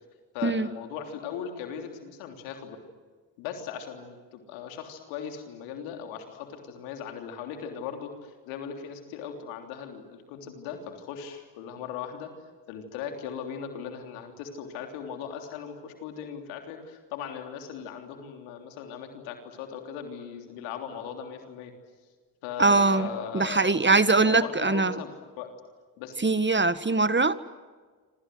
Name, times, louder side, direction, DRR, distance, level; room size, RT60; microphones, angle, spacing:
voice 1, 0.3-2.8 3.4-12.3 12.7-21.7 22.4-25.1 25.4-25.6 26.0-26.1, left 8 dB, 85° left, 5 dB, 3.5 m, -38 dB
voice 2, 22.6-23.1 23.3-25.0 26.2-27.3, right 3 dB, 25° right, 14 dB, 1.7 m, -22 dB
27.5 x 27.0 x 8.0 m, 1.4 s
hypercardioid pair, 40°, 46 cm